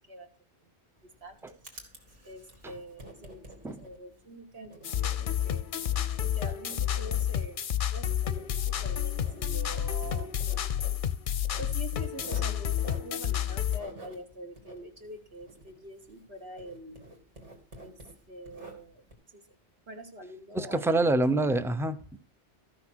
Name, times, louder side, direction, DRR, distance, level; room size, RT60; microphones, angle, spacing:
voice 1, 1.0-1.6 2.2-4.8 5.2-5.6 6.2-7.6 7.9-10.7 11.6-17.1 17.8-17.9 18.3-19.0 19.3-19.4 19.9-21.2, right 1 dB, 65° right, 3 dB, 1.8 m, -45 dB
Writing, 1.0-16.3 16.6-19.1, right 1 dB, 90° right, 2.8 m, -50 dB
sound 1, 4.8-13.8, left 10 dB, 55° left, 0.7 m, -30 dB
voice 2, 20.5-22.2, right 2 dB, 5° right, 11 dB, 0.4 m, -26 dB
13.5 x 6.1 x 6.1 m, 0.41 s
omnidirectional pair, 1.2 m